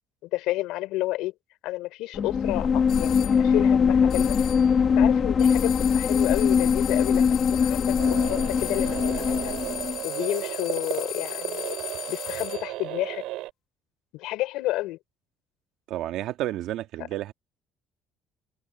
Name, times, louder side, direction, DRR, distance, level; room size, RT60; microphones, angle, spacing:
voice 1, 0.2-1.3 1.6-4.4 4.9-9.5 10.0-11.8 12.1-13.2 14.1-15.0, left 17 dB, 90° left, 3.4 m, -30 dB
sound 1, 2.1-10.0, left 6 dB, 35° left, 1.1 m, -22 dB
sound 2, 2.9-3.4 4.1-4.7 5.4-12.8, left 11 dB, 55° left, 1.1 m, -37 dB
sound 3, 8.0-13.5, right 18 dB, 90° right, 6.7 m, -34 dB
voice 2, 15.9-17.3, right 14 dB, 65° right, 1.5 m, -31 dB
open air
cardioid pair, 160°, 0 cm